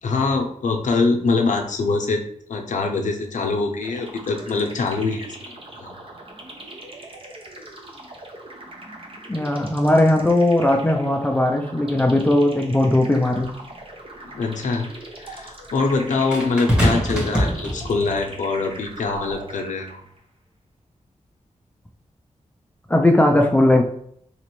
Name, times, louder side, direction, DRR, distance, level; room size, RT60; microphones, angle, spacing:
voice 1, 0.0-2.2 2.5-5.3 5.8-5.9 14.2-14.9 15.2-20.0, left 3 dB, 85° left, 3 dB, 0.6 m, -23 dB
sound 1, 3.8-20.2, right 1 dB, 45° right, 0.7 m, -41 dB
voice 2, 9.3-13.5 22.9-23.8, left 1 dB, 10° left, 2 dB, 0.4 m, -18 dB
sound 2, 13.4-13.5 16.3-18.2 19.1-19.3, equal, 5° right, 1.3 m, -23 dB
4.1 x 3.0 x 3.0 m, 0.69 s
wide cardioid pair, 100°, 13 cm